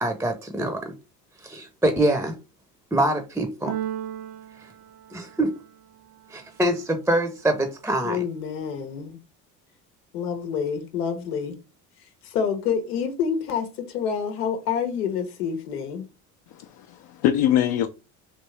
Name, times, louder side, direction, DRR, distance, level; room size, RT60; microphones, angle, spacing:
voice 1, 0.0-0.9 1.4-2.3 2.9-3.7 5.1-5.5 6.3-8.2, right 1 dB, 5° right, 0.7 m, -24 dB
Keyboard (musical), 3.7-5.8, right 11 dB, 75° right, 0.7 m, -35 dB
voice 2, 8.0-9.2 10.1-11.6 12.2-16.1, left 7 dB, 85° left, 0.9 m, -28 dB
voice 3, 16.5-17.9, left 11 dB, 55° left, 0.6 m, -23 dB
3.3 x 2.7 x 3.2 m
hypercardioid pair, 70°, 45 cm